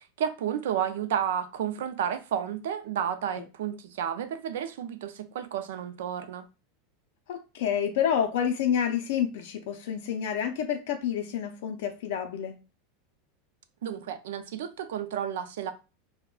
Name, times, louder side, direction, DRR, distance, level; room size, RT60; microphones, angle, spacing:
voice 1, 0.2-6.5 13.8-15.7, right 9 dB, 85° right, 0.4 m, -31 dB
voice 2, 7.3-12.5, left 8 dB, 65° left, 0.4 m, -28 dB
2.3 x 2.1 x 3.6 m
supercardioid pair, 180°, 0 cm